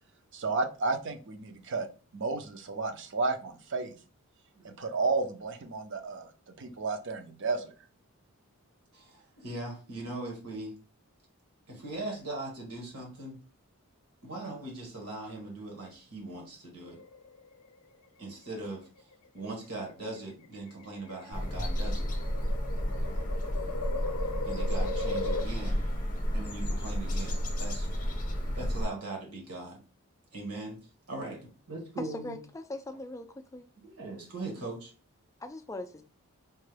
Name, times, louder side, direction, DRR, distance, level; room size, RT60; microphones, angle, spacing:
voice 1, 0.3-1.9 2.1-3.9 4.6-7.7, right 3 dB, 55° right, 7 dB, 0.6 m, -32 dB
voice 2, 8.9-10.8 11.7-13.4 14.2-17.0 18.2-18.9 19.3-22.1 24.4-25.8 26.3-27.9 28.6-29.8 30.3-30.8 31.1-32.4 33.8-34.9, right 2 dB, 80° right, 0 dB, 1.6 m, -40 dB
sound 1, 16.8-17.7 18.8-19.3 20.2-25.4, left 2 dB, 85° left, 0.5 m, -37 dB
sound 2, 21.3-28.9, equal, 35° left, 0.7 m, -31 dB
voice 3, 32.0-33.3 33.5-33.6 35.4-36.0, left 1 dB, 15° left, 7 dB, 0.3 m, -40 dB
4.4 x 2.2 x 3.2 m, 0.35 s
head